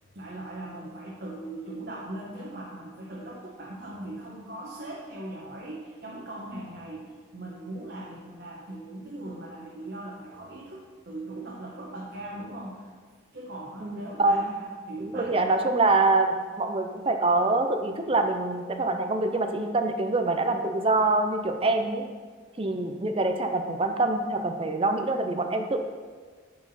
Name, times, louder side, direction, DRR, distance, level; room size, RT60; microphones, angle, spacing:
voice 1, 0.1-12.9 13.3-15.6, right 1 dB, 55° right, -4 dB, 1.1 m, -39 dB
voice 2, 13.8-14.5 15.0-22.1 22.6-25.8, right 2 dB, 30° right, 6 dB, 0.5 m, -25 dB
10.5 x 4.7 x 4.2 m, 1.5 s
head